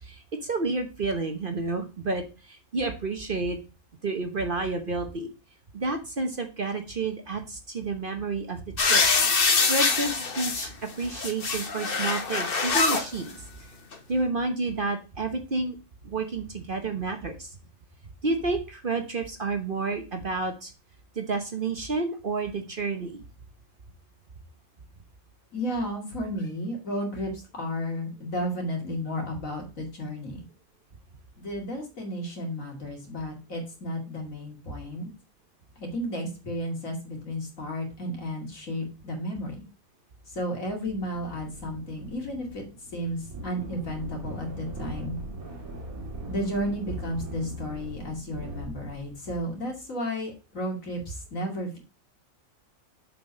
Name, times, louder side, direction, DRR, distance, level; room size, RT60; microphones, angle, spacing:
voice 1, 0.0-3.6 4.0-5.3 5.7-9.0 9.4-10.7 11.0-13.4 14.1-15.8 16.0-17.6 18.2-20.7 21.1-23.2, right 3 dB, 40° right, 5 dB, 1.1 m, -30 dB
sound 1, 8.8-10.7 11.1-13.0 13.9-14.0, left 4 dB, 45° left, 1.2 m, -24 dB
voice 2, 25.5-30.4 31.4-35.1 35.8-39.6 40.3-42.6 42.9-45.2 46.3-51.8, equal, 70° left, 0 dB, 2.9 m, -33 dB
sound 2, 40.8-49.2, right 1 dB, 85° right, 2.3 m, -40 dB
7.4 x 4.7 x 5.3 m, 0.30 s
omnidirectional pair, 1.5 m